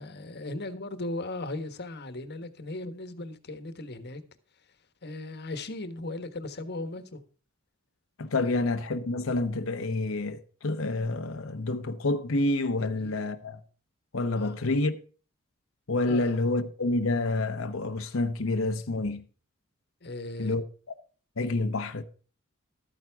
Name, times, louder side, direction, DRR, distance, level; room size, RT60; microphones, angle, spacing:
voice 1, 0.0-4.2 5.0-7.2 8.4-8.5 12.8-13.1 14.3-14.6 16.1-16.3 20.0-20.6, left 2 dB, 55° left, 1.4 m, -37 dB
voice 2, 8.2-13.6 14.1-15.0 15.9-19.2 20.4-20.6 21.4-22.0, left 2 dB, 70° left, 1.0 m, -28 dB
13.0 x 9.3 x 3.6 m
head